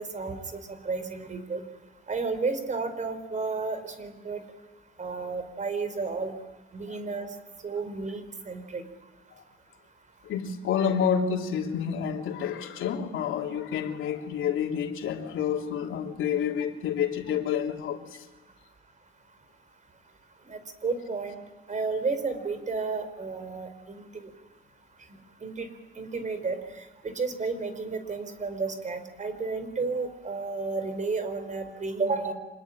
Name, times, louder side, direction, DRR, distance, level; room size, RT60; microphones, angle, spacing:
voice 1, 0.0-1.6 2.1-4.4 5.0-6.3 6.7-7.3 7.6-8.8 20.5-21.4 21.7-24.3 25.4-25.7 26.0-26.6 27.0-32.3, right 4 dB, 40° right, 4.6 m, -32 dB
voice 2, 10.2-18.3, left 8 dB, 80° left, 3.3 m, -29 dB
26.5 x 21.0 x 9.9 m
cardioid pair, 90°, 20 cm